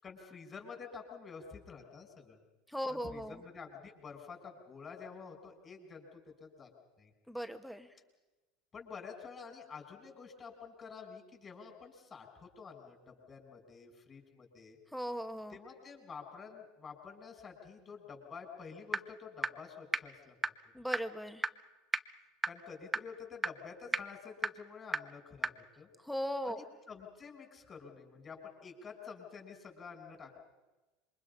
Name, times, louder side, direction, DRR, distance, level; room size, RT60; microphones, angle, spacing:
voice 1, 0.0-2.4 2.9-6.7 7.0-7.1 8.7-14.8 15.5-20.4 22.4-25.9 26.5-30.4, left 5 dB, 30° left, 3 dB, 6.4 m, -49 dB
voice 2, 2.7-3.4 7.3-7.9 14.9-15.6 20.7-21.5 26.0-26.6, equal, ahead, 8 dB, 1.6 m, -38 dB
sound 1, 18.9-19.0 19.4-19.5 19.9-20.0 20.4-20.5 20.9-21.0 21.4-21.5 21.9-22.0 22.4-22.5 22.9-23.0 23.4-23.5 23.9-24.0 24.4-24.5 24.9-25.0 25.4-25.5, right 3 dB, 15° right, 0.9 m, -30 dB
27.5 x 24.0 x 5.6 m, 1.1 s
hypercardioid pair, 80°, 0 cm